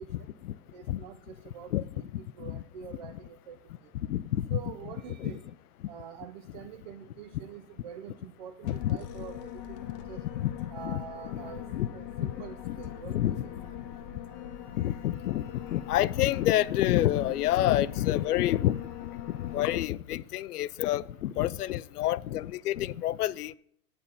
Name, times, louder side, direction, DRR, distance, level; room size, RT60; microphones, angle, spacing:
voice 1, 0.7-3.6 3.8-3.9 4.5-5.4 5.9-9.8 10.1-10.2 10.7-11.7 11.9-13.5 17.3-17.4 21.4-21.7, right 8 dB, 35° right, 0.5 m, -45 dB
voice 2, 4.1-4.6 5.2-5.3 8.6-9.0 10.3-11.0 11.7-11.9 12.2-12.3 12.6-12.8 13.1-13.5 14.8-15.4 15.7-18.8 19.4-23.5, left 13 dB, 85° left, 0.6 m, -28 dB
sound 1, 8.6-19.9, left 10 dB, 30° left, 0.8 m, -42 dB
8.7 x 8.6 x 5.4 m
hypercardioid pair, 145°, 45 cm